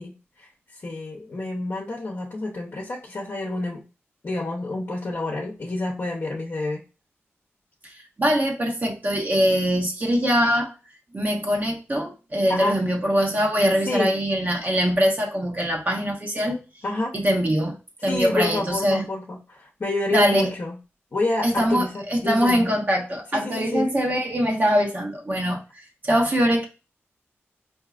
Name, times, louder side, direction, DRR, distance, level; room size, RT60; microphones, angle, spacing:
voice 1, 0.0-3.8 4.2-6.8 12.5-12.8 13.9-14.1 16.8-17.1 18.1-20.8 21.1-22.7 23.3-23.9, left 2 dB, 45° left, -2 dB, 0.9 m, -28 dB
voice 2, 7.8-10.7 11.1-16.6 17.1-17.8 18.0-19.1 20.1-20.5 21.4-26.7, equal, 35° right, 0 dB, 1.1 m, -23 dB
4.5 x 2.7 x 2.4 m, 0.31 s
wide cardioid pair, 70°, 5 cm